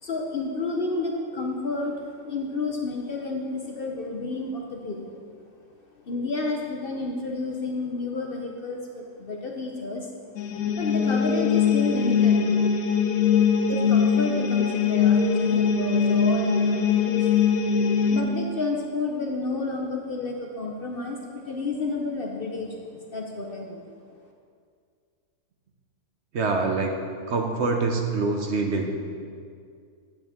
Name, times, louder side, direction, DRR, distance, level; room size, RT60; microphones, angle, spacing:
voice 1, 0.0-2.0 2.2-5.2 6.0-10.1 10.7-12.6 13.6-17.3 18.1-21.2 21.5-23.9, left 3 dB, 50° left, 1 dB, 0.8 m, -30 dB
sound 1, 10.4-18.2, left 6 dB, 80° left, 1.2 m, -22 dB
voice 2, 26.3-27.0 27.3-29.0, right 3 dB, 60° right, 3 dB, 0.9 m, -25 dB
9.6 x 7.9 x 3.6 m, 2.2 s
omnidirectional pair, 1.5 m